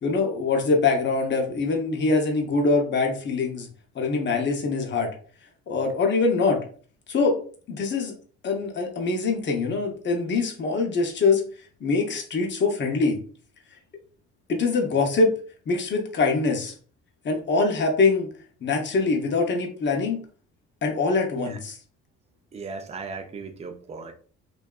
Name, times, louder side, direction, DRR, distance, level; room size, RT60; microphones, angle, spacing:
voice 1, 0.0-3.7 3.9-5.1 5.7-6.6 7.1-7.4 7.7-8.1 8.4-11.4 11.8-13.2 14.5-15.3 15.7-16.7 17.2-18.3 18.6-20.2 20.8-21.7, left 4 dB, 40° left, 2 dB, 0.7 m, -23 dB
voice 2, 22.5-24.1, right 4 dB, 20° right, 5 dB, 0.4 m, -37 dB
2.6 x 2.3 x 2.2 m, 0.43 s
cardioid pair, 90°, 30 cm